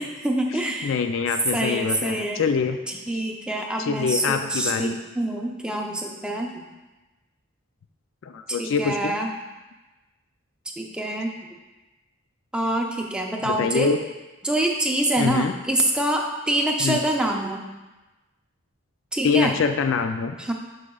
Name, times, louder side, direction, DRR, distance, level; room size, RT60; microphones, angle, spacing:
voice 1, 0.0-0.9 1.5-2.4 2.9-6.6 8.5-9.3 10.8-11.3 12.5-13.9 14.4-17.6 19.1-19.5 20.4-20.5, right 1 dB, 5° right, 0 dB, 0.5 m, -25 dB
voice 2, 0.6-2.8 3.8-5.0 8.2-9.1 13.4-14.0 15.2-15.5 16.8-17.0 19.2-20.4, left 5 dB, 60° left, 8 dB, 0.3 m, -24 dB
11.0 x 4.8 x 2.3 m, 1.1 s
head